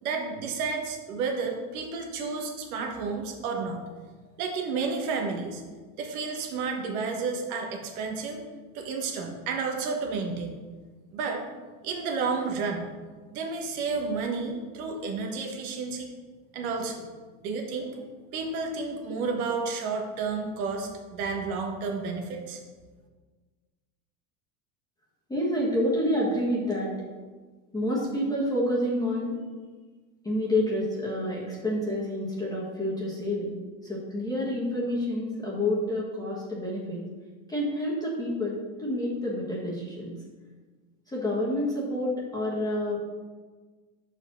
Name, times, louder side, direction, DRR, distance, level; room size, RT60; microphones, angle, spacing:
voice 1, 0.0-3.8 4.4-5.6 6.0-8.4 8.7-10.6 11.1-11.4 11.8-12.8 13.3-16.1 16.5-17.0 17.4-17.9 18.3-22.6, right 4 dB, 80° right, 2 dB, 1.4 m, -31 dB
voice 2, 25.3-26.9 27.7-29.3 30.2-33.5 33.8-37.0 37.5-40.1 41.1-43.0, left 1 dB, 10° left, -6 dB, 1.5 m, -28 dB
5.6 x 4.6 x 6.2 m, 1.4 s
supercardioid pair, 140°, 42 cm